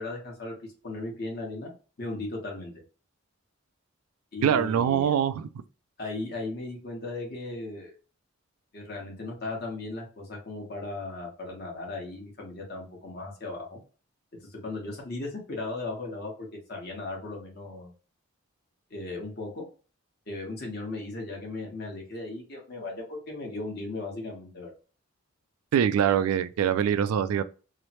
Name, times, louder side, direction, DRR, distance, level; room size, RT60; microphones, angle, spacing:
voice 1, 0.0-1.7 2.0-2.7 4.3-5.1 6.0-7.9 8.7-13.8 14.5-17.9 18.9-19.6 20.3-24.7, left 2 dB, 45° left, 1.0 m, -37 dB
voice 2, 4.4-5.5 25.7-27.4, right 8 dB, 90° right, 0.3 m, -24 dB
3.1 x 2.0 x 2.8 m
head